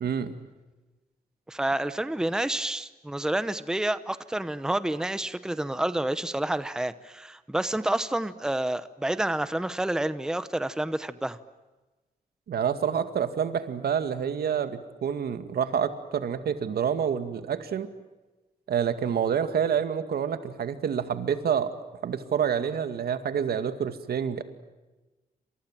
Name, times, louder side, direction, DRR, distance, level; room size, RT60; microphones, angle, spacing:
voice 1, 0.0-0.4 12.5-17.9 18.7-21.7 22.0-24.4, right 8 dB, 85° right, 10 dB, 2.2 m, -28 dB
voice 2, 1.5-11.4, right 1 dB, 5° right, 13 dB, 0.8 m, -29 dB
29.0 x 26.5 x 7.5 m, 1.1 s
wide cardioid pair, 180°, 16 cm